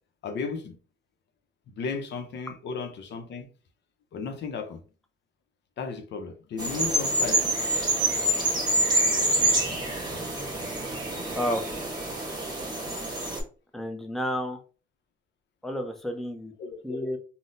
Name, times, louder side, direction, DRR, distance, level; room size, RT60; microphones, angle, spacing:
voice 1, 0.2-0.8 1.7-3.5 4.1-4.8 5.8-7.5 16.6-17.2, left 5 dB, 60° left, 0.6 m, -35 dB
sound 1, 6.6-13.4, right 1 dB, 20° right, 1.1 m, -26 dB
voice 2, 11.3-11.9 13.7-14.6 15.6-16.5 16.8-17.2, equal, ahead, 0.5 m, -31 dB
3.8 x 2.0 x 2.5 m
cardioid pair, 90°, 20 cm